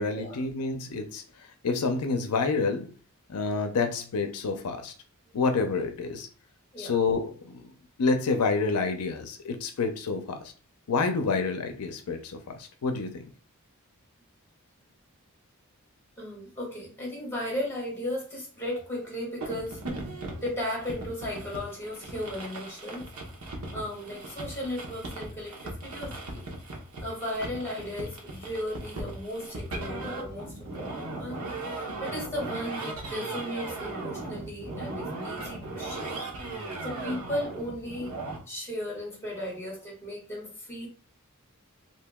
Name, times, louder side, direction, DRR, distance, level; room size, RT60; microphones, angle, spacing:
voice 1, 0.0-2.9 3.3-4.9 5.3-6.3 6.8-7.7 8.0-10.5 10.9-13.3, left 4 dB, 85° left, 0.5 m, -28 dB
voice 2, 16.2-19.8 20.4-23.0 23.7-26.5 27.0-31.4 31.7-36.2 36.8-38.2 38.5-40.9, left 1 dB, 10° left, 1.7 m, -35 dB
sound 1, 19.4-38.4, right 2 dB, 80° right, 1.0 m, -38 dB
2.8 x 2.7 x 3.5 m
head